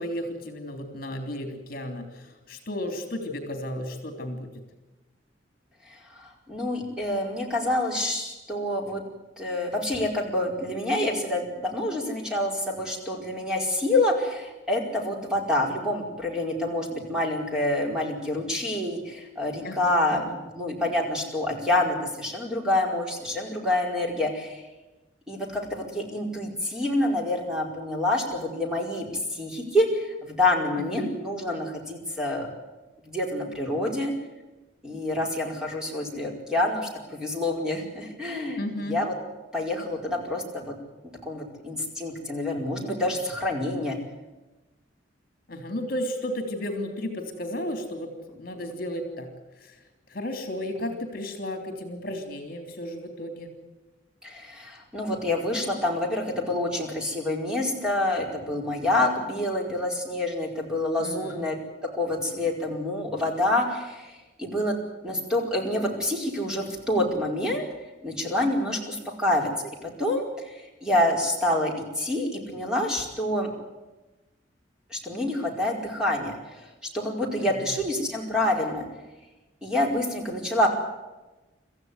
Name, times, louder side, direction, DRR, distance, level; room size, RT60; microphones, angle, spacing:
voice 1, 0.0-4.5 19.6-20.4 30.8-31.1 38.6-39.0 45.5-49.3 49.6-53.5 61.0-61.4 77.4-77.7, left 1 dB, 50° left, 5 dB, 3.3 m, -34 dB
voice 2, 5.9-9.0 9.4-20.2 20.5-24.6 25.3-29.1 29.3-32.5 33.1-34.1 34.8-39.1 39.5-40.7 41.2-44.0 54.2-61.5 61.9-64.1 64.4-64.8 65.0-67.7 68.0-69.5 69.8-73.5 74.9-76.7 76.9-78.8 79.6-80.7, left 1 dB, 5° right, -1 dB, 4.9 m, -27 dB
26.0 x 15.0 x 9.5 m, 1.1 s
head